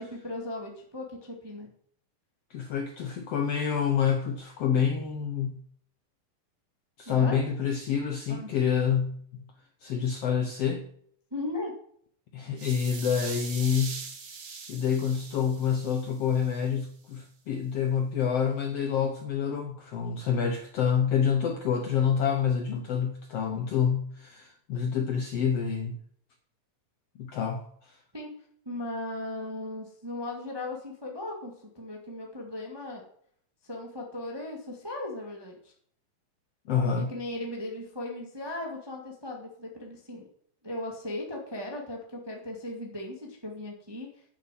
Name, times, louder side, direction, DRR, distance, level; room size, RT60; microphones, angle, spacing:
voice 1, 0.0-1.7 7.0-7.4 8.3-8.5 11.3-11.7 28.1-28.4 28.6-33.0 33.6-35.6 37.0-40.2 40.6-44.1, left 2 dB, 15° right, 0 dB, 1.0 m, -37 dB
voice 2, 2.5-5.6 7.0-9.5 9.8-10.9 12.3-14.0 14.7-26.0 27.2-28.0 36.7-37.1, left 7 dB, 70° left, 5 dB, 1.5 m, -27 dB
sound 1, 12.6-16.6, right 5 dB, 50° right, 1.4 m, -42 dB
9.3 x 6.9 x 7.5 m, 0.63 s
omnidirectional pair, 3.9 m